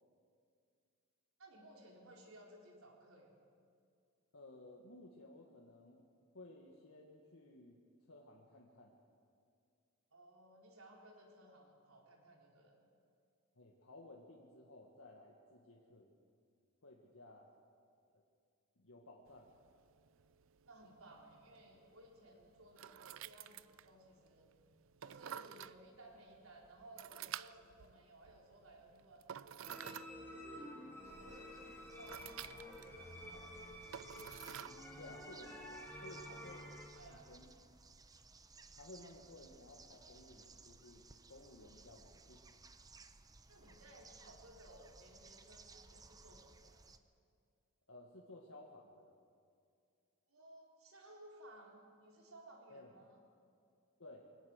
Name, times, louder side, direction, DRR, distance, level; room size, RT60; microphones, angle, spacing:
voice 1, 1.4-3.3 10.1-12.8 20.6-24.5 25.0-30.7 31.0-33.5 36.9-37.3 43.5-46.8 50.3-53.2, right 1 dB, 85° right, -1 dB, 4.2 m, -59 dB
voice 2, 4.3-6.1 6.3-9.0 13.6-16.2 16.8-17.5 18.1-18.2 18.8-19.5 35.0-37.5 38.7-42.4 47.9-49.2 52.7-52.9 54.0-54.3, left 2 dB, 80° left, -1 dB, 1.7 m, -57 dB
sound 1, 19.3-36.8, right 10 dB, 65° right, 0.4 m, -53 dB
sound 2, 29.6-36.9, equal, 10° left, 2.7 m, -51 dB
sound 3, 31.0-47.0, right 3 dB, 20° right, 0.7 m, -61 dB
23.0 x 17.5 x 6.5 m, 2.3 s
head